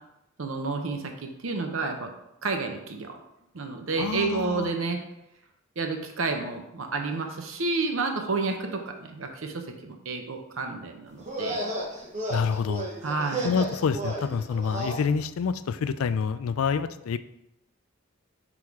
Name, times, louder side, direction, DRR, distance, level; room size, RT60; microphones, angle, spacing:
voice 1, 0.4-2.1 2.4-3.2 3.5-5.0 5.8-11.6 13.0-13.5, right 3 dB, 70° right, 4 dB, 0.7 m, -30 dB
voice 2, 4.0-4.7 12.3-12.9 13.4-17.2, left 6 dB, 90° left, 13 dB, 0.4 m, -27 dB
sound 1, 11.2-15.0, right 1 dB, 35° right, 1.1 m, -33 dB
6.1 x 3.6 x 4.6 m, 0.85 s
head